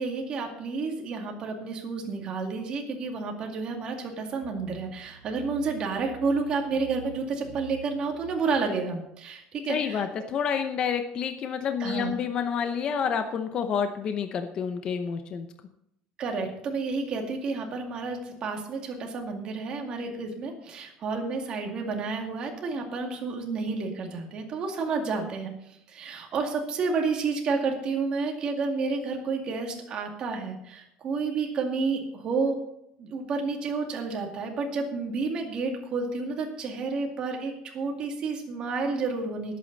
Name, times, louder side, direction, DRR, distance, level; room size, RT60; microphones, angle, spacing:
voice 1, 0.0-10.0 11.8-12.1 16.2-32.6 33.0-39.6, right 4 dB, 30° right, 2 dB, 2.3 m, -30 dB
sound 1, 4.4-8.6, right 7 dB, 75° right, 1.3 m, -47 dB
voice 2, 9.7-15.5, left 7 dB, 30° left, 7 dB, 0.8 m, -29 dB
20.0 x 8.6 x 4.1 m, 0.78 s
cardioid pair, 180°, 3 cm